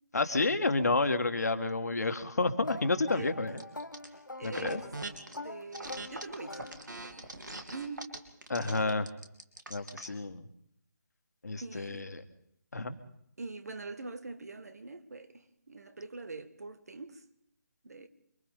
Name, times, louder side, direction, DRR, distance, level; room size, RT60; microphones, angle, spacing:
voice 1, 0.1-3.6 4.4-4.8 8.5-9.1 9.7-10.5 11.4-12.2 12.7-13.0, left 3 dB, 55° left, 1.8 m, -30 dB
sound 1, 2.6-7.3, left 2 dB, 80° left, 1.2 m, -45 dB
sound 2, 3.6-4.1 4.4-5.4 5.7-10.1, right 2 dB, 75° right, 3.1 m, -42 dB
voice 2, 4.4-4.9 5.4-8.2 11.6-12.1 13.4-17.2 17.8-18.1, right 3 dB, 55° right, 1.7 m, -44 dB
29.0 x 24.0 x 3.8 m
figure-of-eight pair, 150°, 10 cm